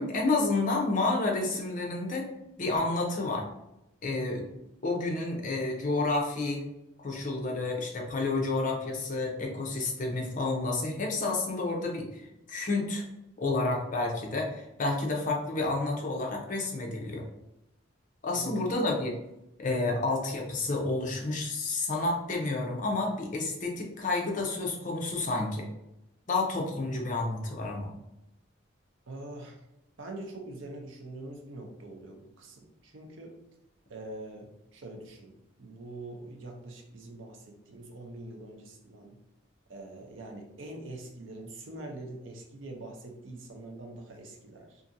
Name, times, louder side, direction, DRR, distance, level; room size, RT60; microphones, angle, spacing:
voice 1, 0.0-2.3 2.6-3.5 4.0-4.5 4.8-6.6 7.0-12.2 12.5-13.0 13.4-17.3 18.2-19.1 19.6-25.7 26.3-27.9, left 2 dB, 40° left, 0 dB, 0.6 m, -30 dB
voice 2, 18.3-18.7 19.8-20.0 29.1-29.6 30.0-33.4 33.9-39.2 39.7-44.8, right 2 dB, 85° right, 2 dB, 0.6 m, -44 dB
2.7 x 2.5 x 2.5 m, 0.90 s
head